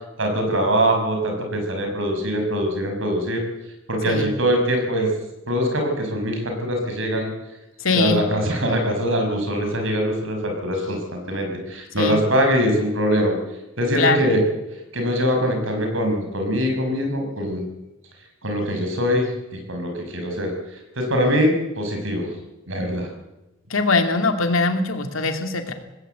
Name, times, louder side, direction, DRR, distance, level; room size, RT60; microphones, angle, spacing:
voice 1, 0.2-3.4 3.9-5.1 5.5-7.3 7.9-13.3 13.8-14.4 14.9-17.6 18.4-19.3 19.7-20.5 21.0-22.3 22.7-23.1, equal, 75° right, 3 dB, 5.8 m, -22 dB
voice 2, 7.8-8.2 12.0-12.2 14.0-14.3 23.7-25.7, left 3 dB, 90° left, 6 dB, 2.7 m, -21 dB
19.0 x 17.0 x 8.2 m, 1.0 s
head